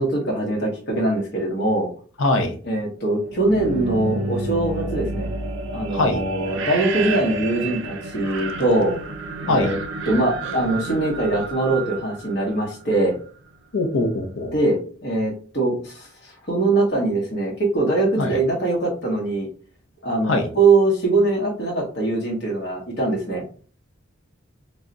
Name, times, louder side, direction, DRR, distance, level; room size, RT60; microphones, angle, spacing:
voice 1, 0.0-1.9 2.6-5.3 5.7-8.9 9.4-9.8 10.1-13.2 14.5-19.5 20.0-23.5, right 2 dB, 60° left, -2 dB, 0.9 m, -22 dB
voice 2, 2.2-2.6 5.9-6.2 9.5-9.7 13.7-14.5 18.2-18.4 20.2-20.5, left 2 dB, 80° left, 5 dB, 0.6 m, -22 dB
sound 1, 3.2-13.1, right 3 dB, 70° right, 0.4 m, -30 dB
2.3 x 2.1 x 3.7 m, 0.41 s
head